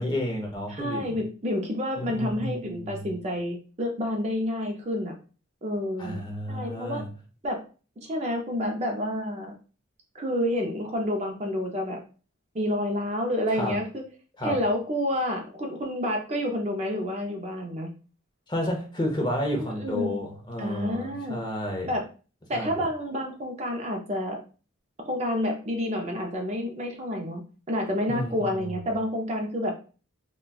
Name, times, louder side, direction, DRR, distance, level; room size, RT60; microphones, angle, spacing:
voice 1, 0.0-1.2 2.0-3.1 6.0-7.1 13.6-13.8 14.4-14.6 18.5-21.9 22.5-22.7 28.1-28.8, left 1 dB, 20° left, 0.7 m, -31 dB
voice 2, 0.7-5.1 5.6-6.2 6.5-7.0 7.4-7.6 8.0-9.5 10.1-12.0 12.5-14.0 14.4-17.9 19.8-20.2 20.6-21.4 21.9-22.0 22.5-24.4 25.0-27.4 27.7-29.7, left 1 dB, 30° right, 0.5 m, -29 dB
4.0 x 2.2 x 2.3 m
head